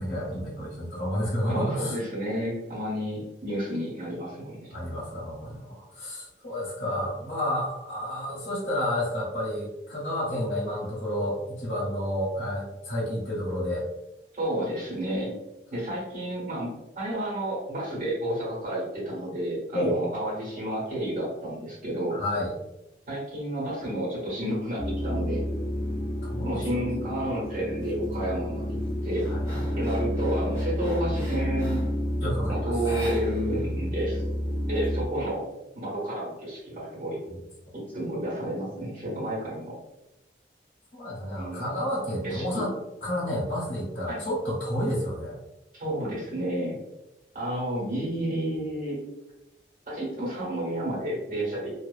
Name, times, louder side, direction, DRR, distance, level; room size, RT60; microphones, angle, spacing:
voice 1, 0.0-2.0 4.7-13.9 19.7-20.0 22.1-22.5 26.3-26.8 29.3-29.8 32.2-32.8 40.9-42.7 43.0-45.3, equal, 60° left, -8 dB, 1.0 m, -30 dB
voice 2, 1.5-4.7 14.3-15.3 15.7-22.2 23.1-25.4 26.4-29.3 29.8-31.8 32.5-34.2 34.6-35.4 35.7-37.2 37.7-39.7 41.4-41.7 42.2-42.7 44.1-44.2 45.7-46.7 47.3-49.0 49.9-51.7, right 1 dB, 50° right, -7 dB, 1.5 m, -31 dB
sound 1, 24.8-35.1, equal, 25° left, 0.4 m, -30 dB
sound 2, 27.8-28.2 28.6-32.0 32.8-33.7 34.0-34.1 34.5-35.4, equal, 15° right, 0.7 m, -43 dB
2.7 x 2.1 x 2.4 m, 0.94 s
head